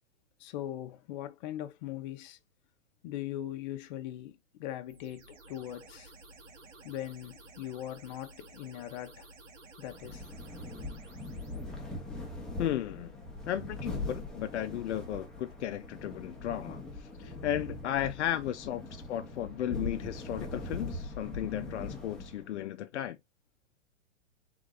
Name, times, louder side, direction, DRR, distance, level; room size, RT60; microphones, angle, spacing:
voice 1, 0.4-2.4 3.0-6.1 6.8-9.3 9.8-10.2 17.2-17.3, left 12 dB, 40° left, 0.8 m, -40 dB
sound 1, 4.9-11.7, right 2 dB, 85° right, 2.4 m, -53 dB
sound 2, 9.9-22.6, left 2 dB, ahead, 1.0 m, -41 dB
voice 2, 12.6-13.1 13.5-18.8 19.1-23.2, left 11 dB, 65° left, 0.5 m, -35 dB
3.8 x 3.7 x 3.7 m
hypercardioid pair, 140°, 37 cm